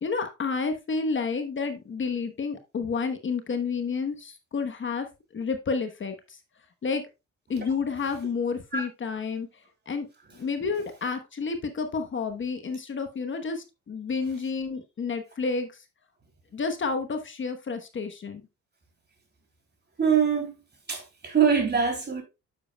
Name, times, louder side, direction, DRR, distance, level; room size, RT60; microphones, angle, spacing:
voice 1, 0.0-5.1 5.3-6.4 6.8-7.0 7.5-9.5 9.9-10.1 10.3-15.8 16.5-18.4, left 4 dB, 40° left, 1.1 m, -30 dB
voice 2, 20.0-20.5 20.9-22.2, right 7 dB, 35° right, 3.0 m, -23 dB
9.2 x 7.3 x 2.3 m
cardioid pair, 90°, 30 cm